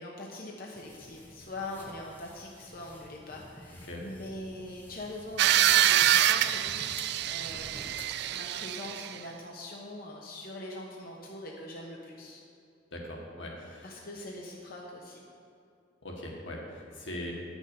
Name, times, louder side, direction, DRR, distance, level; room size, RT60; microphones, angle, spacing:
voice 1, 0.0-7.8 8.3-12.4 13.8-15.3, left 1 dB, 50° left, -2 dB, 1.1 m, -43 dB
sound 1, 0.7-8.4, left 1 dB, 10° left, 0.9 m, -50 dB
sound 2, 5.4-9.2, right 12 dB, 60° right, 0.3 m, -25 dB
voice 2, 12.9-13.9 16.0-17.3, left 1 dB, 85° left, -1 dB, 1.8 m, -40 dB
9.1 x 6.2 x 6.9 m, 2.5 s
head